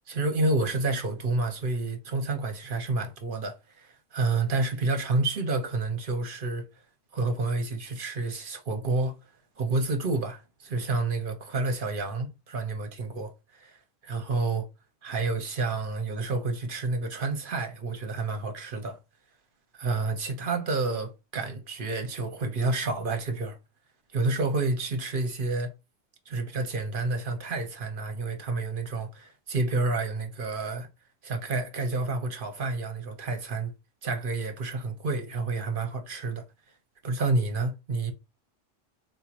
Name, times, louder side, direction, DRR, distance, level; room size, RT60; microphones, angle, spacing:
voice 1, 0.1-6.6 7.1-9.2 9.6-14.7 15.0-19.0 19.8-23.6 24.1-25.7 26.3-30.9 31.2-33.7 34.0-36.4 37.0-38.1, right 3 dB, 50° right, 0.9 m, -29 dB
4.1 x 3.0 x 2.5 m
omnidirectional pair, 1.3 m